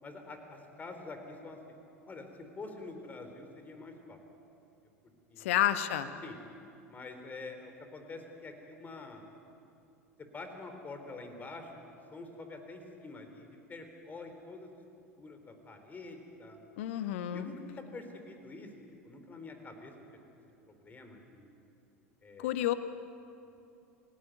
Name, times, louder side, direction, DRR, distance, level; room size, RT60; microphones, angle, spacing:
voice 1, 0.0-1.6 2.1-4.2 5.3-5.5 6.2-6.4 6.9-9.2 10.2-11.8 12.1-14.7 15.2-16.6 17.3-18.7 19.0-19.9 20.7-21.5 22.2-22.6, left 3 dB, 20° left, 6 dB, 4.1 m, -46 dB
voice 2, 5.4-6.1 16.8-17.5 22.4-22.7, left 12 dB, 60° left, 11 dB, 1.4 m, -30 dB
29.0 x 17.5 x 9.5 m, 2.7 s
figure-of-eight pair, 80°, 8 cm